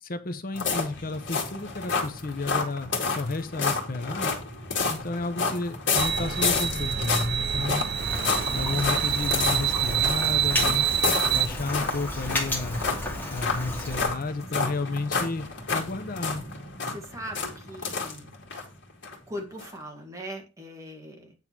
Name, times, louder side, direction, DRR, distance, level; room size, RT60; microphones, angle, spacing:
voice 1, 0.0-4.3 4.9-7.8 8.5-10.8 11.3-12.8 13.3-16.4, left 3 dB, 45° left, 0.8 m, -32 dB
sound 1, 0.5-18.6 19.0-19.1 19.6-19.7, left 4 dB, 65° left, 2.3 m, -30 dB
sound 2, 6.0-11.5, right 9 dB, 55° right, 0.6 m, -27 dB
Rain, 8.0-14.1, left 1 dB, 10° left, 2.2 m, -33 dB
voice 2, 14.5-14.9 16.9-18.3 19.3-21.3, equal, 15° right, 1.9 m, -40 dB
9.2 x 3.8 x 5.9 m
head